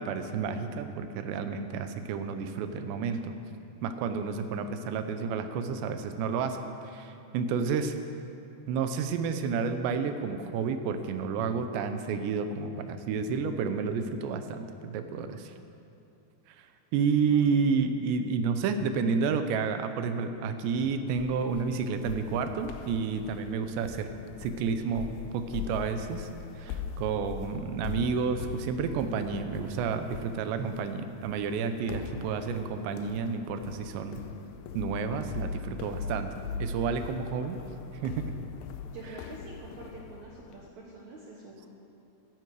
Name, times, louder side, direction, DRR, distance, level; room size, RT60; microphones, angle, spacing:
voice 1, 0.0-3.3 3.8-6.6 6.8-8.0 8.7-15.5 16.6-16.7 16.9-24.1 24.4-26.3 26.6-34.2 34.7-36.3 36.6-37.6 38.0-38.2, right 5 dB, 85° right, 8 dB, 3.1 m, -30 dB
voice 2, 17.2-17.7 38.9-41.7, right 3 dB, 65° right, -3 dB, 1.9 m, -47 dB
sound 1, 21.2-40.7, left 6 dB, 80° left, 2.7 m, -41 dB
15.5 x 14.0 x 4.8 m, 2.7 s
omnidirectional pair, 4.9 m